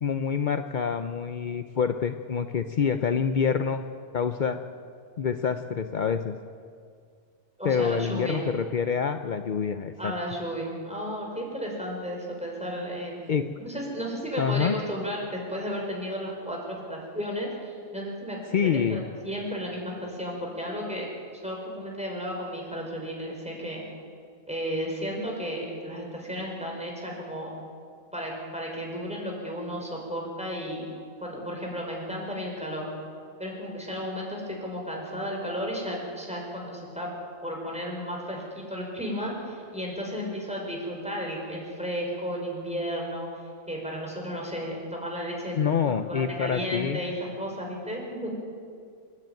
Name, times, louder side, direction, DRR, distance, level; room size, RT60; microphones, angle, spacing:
voice 1, 0.0-3.8 4.1-4.6 5.2-6.4 7.6-10.1 13.3-13.4 14.4-14.8 18.5-19.0 45.6-47.0, left 6 dB, 60° left, 8 dB, 0.5 m, -26 dB
voice 2, 7.6-8.4 10.0-13.2 13.6-21.1 21.4-23.8 24.5-27.5 28.1-30.9 31.2-32.9 33.4-37.1 37.4-45.6 45.8-48.3, equal, 5° right, -2 dB, 5.0 m, -33 dB
28.0 x 10.5 x 9.1 m, 2.2 s
omnidirectional pair, 1.6 m